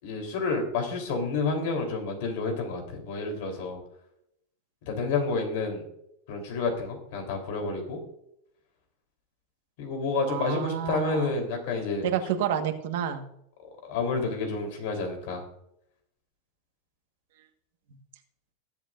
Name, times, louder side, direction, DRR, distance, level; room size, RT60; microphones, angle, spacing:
voice 1, 0.0-3.8 4.9-5.9 6.3-8.0 9.8-12.1 13.8-15.4, left 4 dB, 60° left, 4 dB, 3.6 m, -29 dB
voice 2, 10.3-11.3 12.0-13.3, right 9 dB, 65° right, 6 dB, 1.5 m, -29 dB
20.5 x 8.0 x 2.6 m, 0.77 s
supercardioid pair, 155°, 0 cm